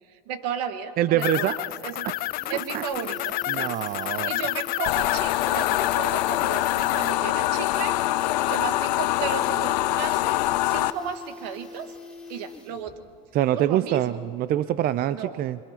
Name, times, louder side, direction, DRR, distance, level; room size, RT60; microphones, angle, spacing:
voice 1, 0.1-2.1 2.5-3.8 4.1-7.9 8.4-10.2 10.6-11.9 12.3-13.0 13.5-14.2 15.1-15.4, right 7 dB, 75° right, 10 dB, 1.5 m, -34 dB
voice 2, 1.0-1.6 2.0-2.1 2.7-2.8 3.5-4.3 13.3-15.6, right 12 dB, 45° right, 15 dB, 0.6 m, -25 dB
sound 1, 1.2-7.1, left 17 dB, 45° left, 0.4 m, -30 dB
sound 2, 1.8-1.9 2.1-13.0 13.3-13.4, left 3 dB, 5° left, 3.2 m, -44 dB
sound 3, 4.9-10.9, left 16 dB, 80° left, 0.7 m, -24 dB
27.0 x 22.0 x 5.7 m, 2.6 s
supercardioid pair, 90°, 21 cm